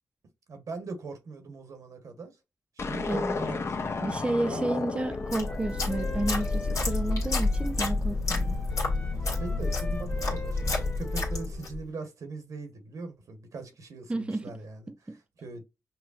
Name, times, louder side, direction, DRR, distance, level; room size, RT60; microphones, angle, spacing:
voice 1, 0.5-2.4 2.8-4.8 9.2-15.6, right 3 dB, 75° right, 1.1 m, -41 dB
sound 1, 2.8-7.2, left 4 dB, 50° left, 0.6 m, -34 dB
voice 2, 3.1-3.4 4.0-8.6 14.1-14.5 14.9-15.2, right 2 dB, 20° right, 0.5 m, -31 dB
Wind instrument woodwind instrument, 4.5-8.0 8.3-11.8, left 1 dB, 25° left, 1.1 m, -44 dB
sound 2, 5.1-11.8, left 3 dB, 75° left, 1.5 m, -29 dB
5.7 x 2.2 x 2.4 m
cardioid pair, 55°, 6 cm